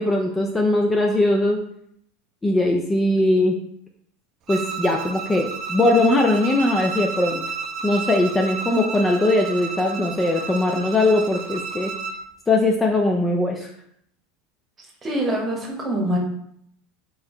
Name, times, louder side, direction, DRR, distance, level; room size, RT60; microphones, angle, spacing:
voice 1, 0.0-1.6 2.4-3.6 4.5-7.4 7.8-11.9 12.5-13.7, left 2 dB, 15° left, 1 dB, 0.4 m, -20 dB
Bowed string instrument, 4.5-12.2, right 5 dB, 45° right, 0.4 m, -31 dB
voice 2, 15.0-16.2, right 1 dB, 20° right, 0 dB, 1.1 m, -24 dB
3.7 x 2.8 x 3.0 m, 0.70 s
supercardioid pair, 110°, 0 cm